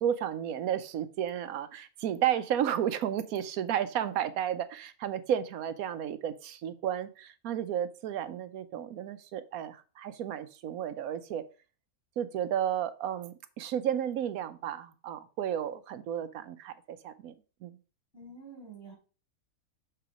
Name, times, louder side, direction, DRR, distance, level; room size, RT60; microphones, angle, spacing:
voice 1, 0.0-11.4 12.2-17.3 17.6-17.8, right 10 dB, 75° right, 12 dB, 1.1 m, -32 dB
voice 2, 18.1-18.9, right 3 dB, 40° left, -4 dB, 4.5 m, -47 dB
6.9 x 4.4 x 4.9 m, 0.35 s
omnidirectional pair, 1.6 m